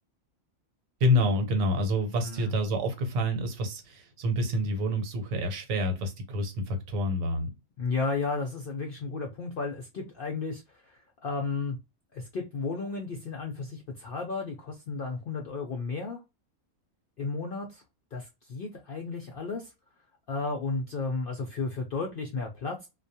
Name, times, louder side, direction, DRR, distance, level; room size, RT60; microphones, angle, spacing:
voice 1, 1.0-7.5, equal, 75° right, 1.1 m, -28 dB
voice 2, 7.8-11.8 12.1-16.2 17.2-17.8 18.1-19.7 20.3-22.9, left 4 dB, 65° left, 0.5 m, -33 dB
2.2 x 2.2 x 2.6 m
omnidirectional pair, 1.4 m